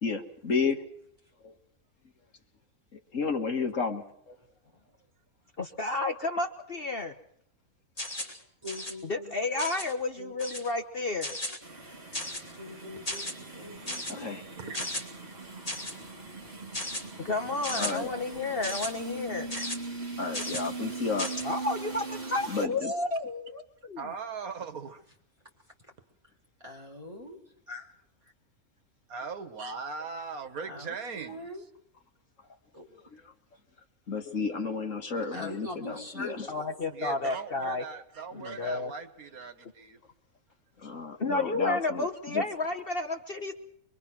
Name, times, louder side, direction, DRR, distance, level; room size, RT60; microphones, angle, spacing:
voice 1, 0.0-0.8 1.4-1.5 3.1-4.4 14.1-14.4 17.7-18.1 20.2-21.3 22.5-22.9 33.1-33.2 34.1-36.5 40.8-42.4, left 4 dB, 60° left, 5 dB, 2.0 m, -32 dB
voice 2, 5.6-7.1 9.0-11.4 17.2-19.5 21.4-24.1 36.5-37.8 38.3-38.9 41.2-43.5, left 2 dB, 45° left, 5 dB, 1.2 m, -31 dB
sound 1, 8.0-8.4 8.7-8.9 9.6-9.9 10.4-10.7 11.2-11.6 12.1-12.5 13.1-13.3 13.9-14.1 14.7-15.0 15.7-16.0 16.7-17.0 17.6-17.9 18.6-18.9 19.5-19.8 20.3-20.7 21.2-21.4, left 1 dB, 25° left, 2.9 m, -35 dB
voice 3, 8.6-9.3 10.2-10.3 12.5-14.3 14.6-14.8 22.9-23.0 26.6-27.4 27.7-27.9 30.6-31.6 32.7-32.8 35.3-36.7, left 1 dB, 20° right, -1 dB, 3.9 m, -43 dB
sound 2, 11.6-22.7, right 3 dB, 45° right, 3.4 m, -41 dB
voice 4, 14.6-14.9 19.5-19.7 20.5-20.6 24.0-25.0 29.1-31.5 36.9-40.0, right 5 dB, 75° right, 9 dB, 1.8 m, -39 dB
24.5 x 22.5 x 6.1 m, 0.68 s
omnidirectional pair, 1.5 m